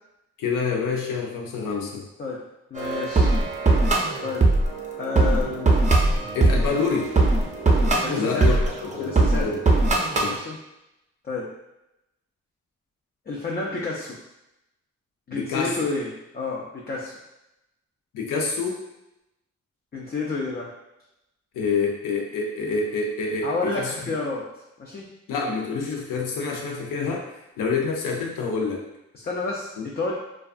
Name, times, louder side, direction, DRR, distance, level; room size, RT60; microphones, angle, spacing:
voice 1, 0.4-2.1 6.3-7.1 8.1-8.6 8.8-9.8 10.2-10.4 15.3-15.8 18.1-18.8 21.5-23.5 23.8-23.9 25.3-27.2 27.6-28.8 29.8-29.9, left 4 dB, 80° left, 0 dB, 0.6 m, -27 dB
voice 2, 2.7-3.4 4.2-4.5 5.0-5.9 8.0-8.6 9.0-9.5 10.3-10.6 11.2-11.5 13.3-14.2 15.3-17.1 19.9-20.7 23.4-24.5 24.8-25.1 29.1-30.1, left 3 dB, 30° left, -3 dB, 0.4 m, -30 dB
sound 1, 2.8-10.3, right 2 dB, 25° right, 0.5 m, -21 dB
2.4 x 2.3 x 2.4 m, 0.91 s
supercardioid pair, 50°, 32 cm